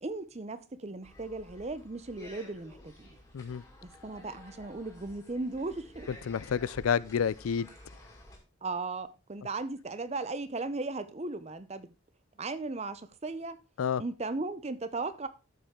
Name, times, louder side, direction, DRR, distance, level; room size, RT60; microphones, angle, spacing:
voice 1, 0.0-3.2 3.8-6.1 8.6-11.9 12.4-13.6 14.0-15.3, right 3 dB, 30° right, 0.6 m, -37 dB
sound 1, 1.0-8.4, left 1 dB, 15° left, 2.3 m, -52 dB
voice 2, 6.1-7.7 13.8-14.0, left 7 dB, 85° left, 0.4 m, -29 dB
13.0 x 5.4 x 3.6 m
head